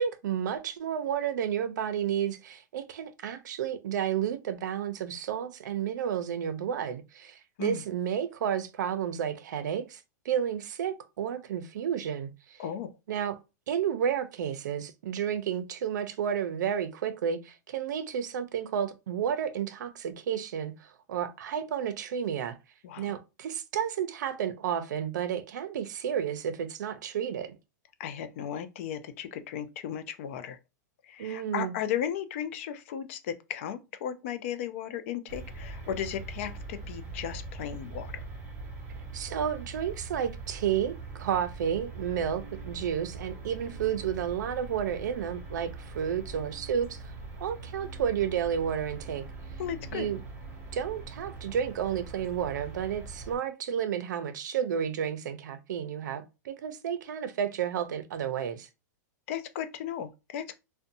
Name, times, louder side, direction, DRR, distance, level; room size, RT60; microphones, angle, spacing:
voice 1, 0.0-12.6 13.1-13.4 13.7-22.6 23.0-27.5 31.2-31.7 39.1-47.1 47.4-49.3 49.9-50.2 50.7-58.7, right 8 dB, 80° right, 0.5 m, -31 dB
voice 2, 12.6-12.9 22.8-23.1 28.0-30.6 31.1-38.2 49.6-50.1 59.3-60.5, left 9 dB, 45° left, 0.3 m, -35 dB
sound 1, 35.3-53.4, right 3 dB, 20° right, 0.7 m, -42 dB
2.6 x 2.1 x 2.6 m
supercardioid pair, 165°, 10 cm